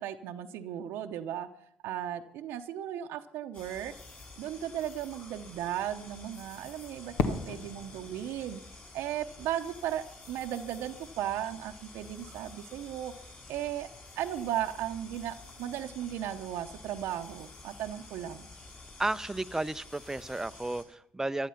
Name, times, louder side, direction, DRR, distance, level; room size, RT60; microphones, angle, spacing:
voice 1, 0.0-1.5 1.8-3.9 4.4-8.6 8.9-13.1 13.5-13.9 14.2-18.5, right 11 dB, 75° right, 5 dB, 0.8 m, -36 dB
sound 1, 3.5-20.8, left 3 dB, 40° left, 6.4 m, -50 dB
Fireworks, 7.2-10.0, left 5 dB, 70° left, 1.6 m, -36 dB
voice 2, 19.0-21.5, right 2 dB, 10° right, 12 dB, 0.6 m, -33 dB
15.5 x 12.0 x 5.8 m, 0.72 s
supercardioid pair, 65°, 4 cm